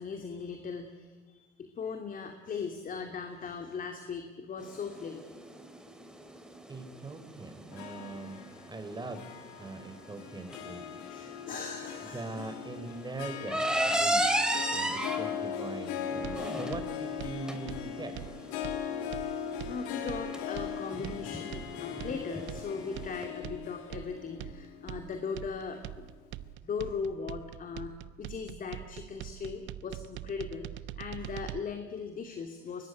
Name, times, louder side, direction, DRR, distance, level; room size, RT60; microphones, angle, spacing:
voice 1, 0.0-5.4 11.1-12.5 19.4-26.1 26.6-32.9, left 5 dB, 45° left, 5 dB, 2.8 m, -39 dB
sound 1, 4.6-23.2, right 1 dB, 5° right, 3.5 m, -35 dB
voice 2, 6.7-8.4 8.7-9.2 9.6-10.8 12.0-14.3 14.7-18.1, right 3 dB, 20° right, 8 dB, 4.2 m, -41 dB
Harp, 7.7-26.2, left 8 dB, 85° left, 2.5 m, -40 dB
sound 2, 16.2-31.6, right 14 dB, 70° right, 1.0 m, -43 dB
24.0 x 21.0 x 9.5 m, 1.3 s
supercardioid pair, 85°, 20 cm